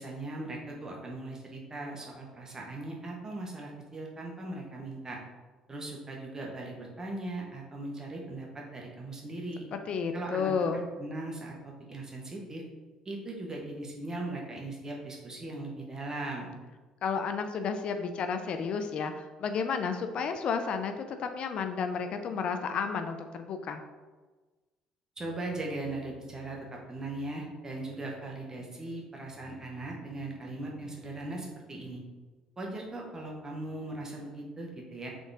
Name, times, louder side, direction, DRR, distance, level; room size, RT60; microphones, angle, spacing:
voice 1, 0.0-5.2 5.7-9.6 10.1-10.5 11.0-12.6 13.0-16.6 25.2-32.0 32.6-35.1, right 2 dB, 30° right, -1 dB, 1.2 m, -39 dB
voice 2, 9.7-10.8 17.0-23.8, left 5 dB, 55° left, 7 dB, 0.4 m, -32 dB
3.7 x 3.7 x 3.5 m, 1.3 s
hypercardioid pair, 60°, 2 cm